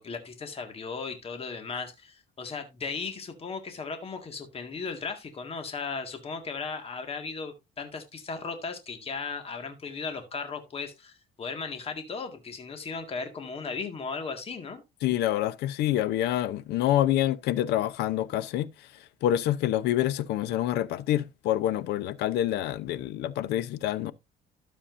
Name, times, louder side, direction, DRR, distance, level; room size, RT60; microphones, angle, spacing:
voice 1, 0.0-14.8, left 4 dB, 35° left, 1.9 m, -36 dB
voice 2, 15.0-18.7 19.2-24.1, left 12 dB, 80° left, 0.7 m, -27 dB
12.5 x 7.2 x 2.6 m
cardioid pair, 110°, 17 cm